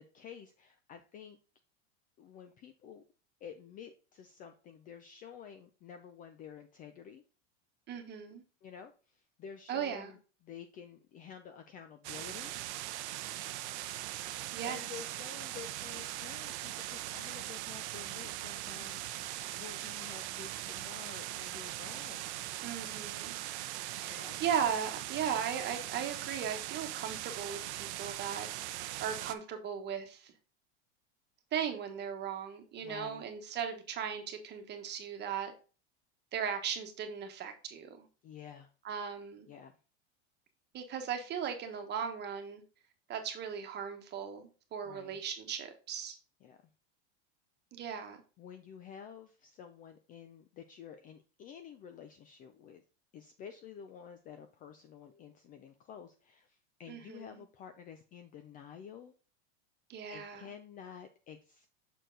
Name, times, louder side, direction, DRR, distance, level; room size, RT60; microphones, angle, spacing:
voice 1, 0.0-1.4 2.2-3.0 3.4-7.2 8.6-10.2 10.4-12.5 14.6-22.3 24.1-24.4 32.8-33.3 38.2-38.7 39.5-39.8 44.8-45.2 46.4-46.6 48.4-52.8 53.1-59.1 60.1-61.7, left 8 dB, 25° left, 0.4 m, -50 dB
voice 2, 7.9-8.4 9.7-10.1 14.5-15.0 22.6-23.4 23.9-28.5 29.0-30.3 31.5-35.5 36.3-38.1 38.8-39.5 40.7-42.6 43.1-46.2 47.7-48.2 56.9-57.4 59.9-60.5, right 8 dB, 30° right, 1.2 m, -37 dB
sound 1, 12.0-29.3, right 15 dB, 70° right, 0.7 m, -40 dB
6.4 x 4.4 x 3.8 m
supercardioid pair, 140°, 35 cm